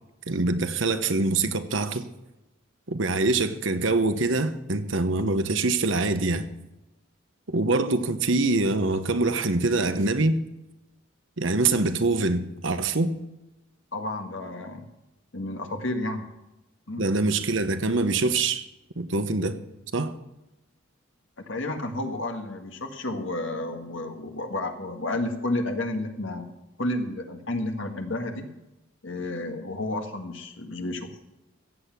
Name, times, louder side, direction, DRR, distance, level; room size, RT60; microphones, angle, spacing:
voice 1, 0.3-2.1 2.9-6.5 7.5-10.4 11.4-13.1 17.0-18.6 19.0-19.6 19.9-20.1, right 3 dB, 65° right, 1.0 m, -24 dB
voice 2, 13.9-14.9 15.3-16.2 16.9-17.1 21.5-26.5 26.8-28.5 29.0-31.1, left 2 dB, 65° left, 1.7 m, -31 dB
15.0 x 8.5 x 6.0 m
head